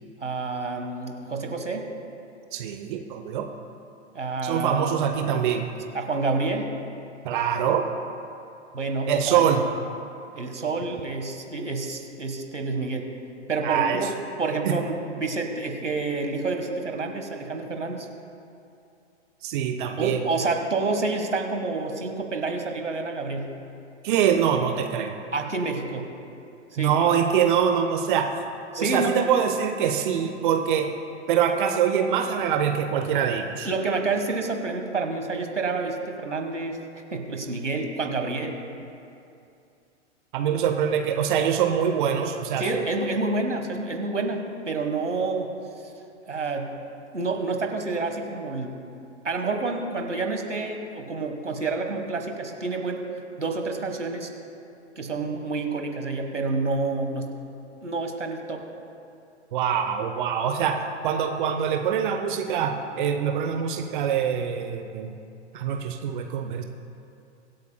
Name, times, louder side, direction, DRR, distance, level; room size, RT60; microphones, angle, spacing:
voice 1, 0.2-1.9 4.1-4.9 5.9-6.8 8.7-9.4 10.3-13.1 13.5-14.1 14.4-18.1 20.0-23.5 25.3-26.1 26.7-26.9 28.7-29.2 33.6-36.8 37.1-38.6 42.6-45.5 46.3-46.7 47.1-48.8 49.2-53.0 53.4-54.3 55.0-57.3 57.8-58.6, right 3 dB, 85° right, 4 dB, 1.5 m, -28 dB
voice 2, 2.5-3.5 4.4-5.7 7.2-7.9 9.1-9.7 13.6-14.1 14.6-14.7 19.4-20.2 24.0-25.1 26.8-28.3 28.8-30.9 31.3-33.7 40.3-42.7 59.5-60.8 61.0-65.1 65.5-66.6, right 8 dB, 45° right, 5 dB, 0.8 m, -24 dB
24.5 x 8.2 x 2.2 m, 2.6 s
figure-of-eight pair, 110°, 35 cm